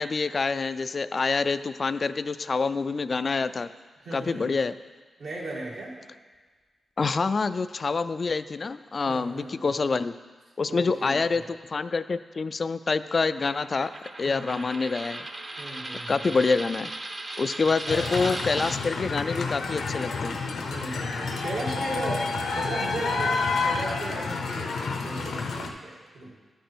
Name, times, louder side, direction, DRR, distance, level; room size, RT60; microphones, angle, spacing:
voice 1, 0.0-3.7 4.1-4.8 7.0-10.1 10.6-13.9 14.2-15.3 16.1-16.9 17.4-20.4, left 4 dB, 45° left, 13 dB, 0.3 m, -26 dB
voice 2, 4.0-4.5 5.2-5.9 9.1-9.8 10.7-11.4 14.2-14.6 15.6-16.3 17.9-18.1 20.7-26.3, right 2 dB, 75° right, -4 dB, 2.3 m, -37 dB
Coin (dropping), 13.3-18.8, right 2 dB, 35° right, 0.8 m, -37 dB
sound 1, 17.9-25.7, left 4 dB, 80° left, 0.8 m, -29 dB
11.5 x 5.1 x 4.4 m, 1.4 s
cardioid pair, 75°, 0 cm